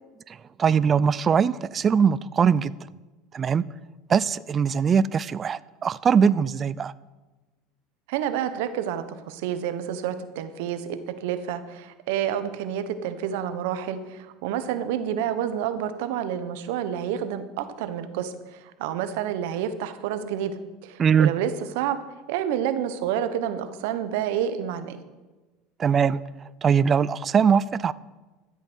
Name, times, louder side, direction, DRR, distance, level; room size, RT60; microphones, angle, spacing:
voice 1, 0.6-2.7 3.3-3.6 4.1-6.9 21.0-21.3 25.8-26.2 26.6-27.9, right 7 dB, 30° right, 19 dB, 0.4 m, -21 dB
voice 2, 8.1-22.0 22.3-25.0, right 9 dB, 75° right, 10 dB, 1.1 m, -29 dB
13.0 x 8.3 x 6.3 m, 1.2 s
supercardioid pair, 110°, 0 cm